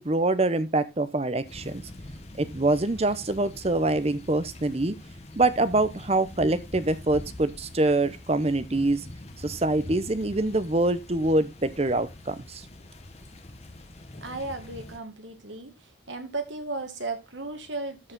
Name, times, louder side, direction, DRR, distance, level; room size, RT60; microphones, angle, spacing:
voice 1, 0.0-1.8 2.4-5.0 5.4-9.0 9.4-12.6, right 2 dB, 30° right, 13 dB, 0.7 m, -25 dB
sound 1, 1.4-15.0, left 1 dB, 35° left, 1.2 m, -44 dB
voice 2, 14.2-15.7 16.1-18.1, right 3 dB, 75° right, 6 dB, 1.9 m, -35 dB
13.5 x 4.9 x 3.9 m, 0.25 s
head